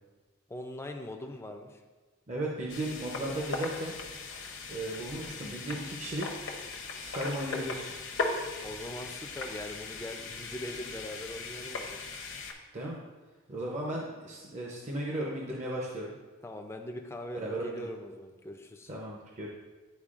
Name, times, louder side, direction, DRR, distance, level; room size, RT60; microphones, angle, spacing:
voice 1, 0.5-1.8 8.6-12.0 16.4-18.9, left 1 dB, 10° left, 4 dB, 0.4 m, -41 dB
voice 2, 2.3-4.0 4.7-6.4 6.9-7.9 12.7-13.0 13.5-16.1 17.3-17.9 18.9-19.5, right 1 dB, 35° right, -3 dB, 0.7 m, -35 dB
sound 1, 2.7-12.5, left 3 dB, 60° left, 0.7 m, -38 dB
10.5 x 4.4 x 2.4 m, 1.3 s
head